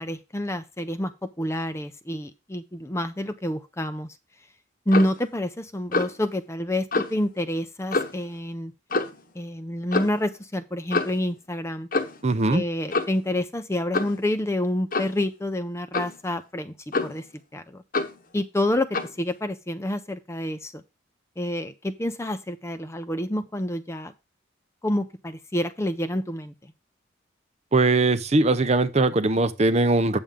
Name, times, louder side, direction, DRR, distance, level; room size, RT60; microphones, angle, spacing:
voice 1, 0.0-4.1 4.9-8.7 9.3-11.9 12.5-16.7 17.0-17.2 17.5-17.8 18.3-20.8 21.4-24.1 24.8-26.5, left 1 dB, 15° left, 0.6 m, -28 dB
Clock, 4.9-5.2 5.9-6.2 6.9-7.1 7.9-8.2 8.9-9.2 9.9-10.2 10.9-11.2 11.9-12.3 12.9-13.2 13.9-14.2 14.9-15.2 15.9-16.2 16.9-17.3 17.9-18.2 18.9-19.2, left 3 dB, 45° left, 1.1 m, -27 dB
voice 2, 12.2-12.6 27.7-30.2, right 2 dB, 35° right, 0.6 m, -20 dB
8.9 x 6.9 x 3.6 m
head